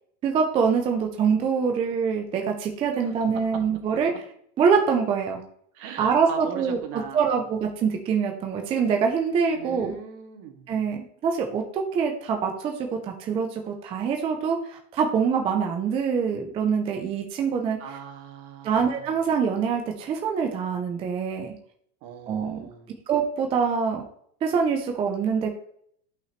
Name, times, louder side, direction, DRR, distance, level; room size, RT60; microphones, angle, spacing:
voice 1, 0.2-4.1 4.6-5.4 6.0-9.9 10.7-17.8 18.6-21.5 22.3-22.7 23.1-24.0 24.4-25.5, right 6 dB, 15° right, 3 dB, 0.3 m, -25 dB
voice 2, 5.7-7.5 9.5-10.7 17.8-19.0 22.0-22.9, right 7 dB, 60° right, 4 dB, 2.0 m, -40 dB
11.0 x 5.7 x 3.0 m, 0.66 s
supercardioid pair, 160°, 47 cm